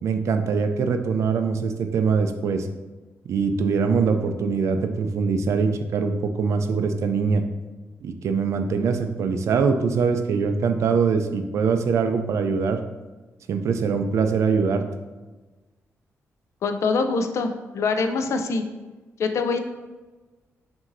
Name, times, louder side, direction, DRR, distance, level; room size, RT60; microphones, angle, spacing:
voice 1, 0.0-2.7 3.3-7.4 8.0-12.8 13.5-14.8, right 5 dB, 65° right, 7 dB, 0.4 m, -23 dB
voice 2, 16.6-18.6 19.2-19.6, left 4 dB, 65° left, 7 dB, 0.4 m, -24 dB
5.8 x 2.7 x 2.6 m, 1.2 s
cardioid pair, 120°, 5 cm